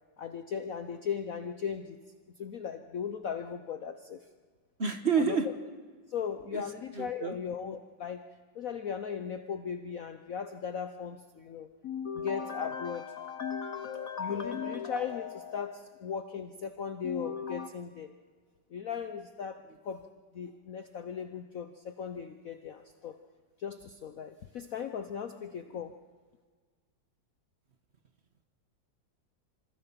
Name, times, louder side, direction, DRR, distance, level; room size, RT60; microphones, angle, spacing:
voice 1, 0.2-2.0 2.3-4.3 5.2-5.5 6.1-8.2 8.5-18.1 18.7-20.1 20.3-23.2 23.6-26.0, left 7 dB, 55° left, 8 dB, 1.1 m, -37 dB
voice 2, 4.8-5.5 6.5-6.6 6.9-7.3, right 6 dB, 40° right, 8 dB, 1.5 m, -28 dB
27.0 x 26.5 x 5.8 m, 1.5 s
omnidirectional pair, 2.0 m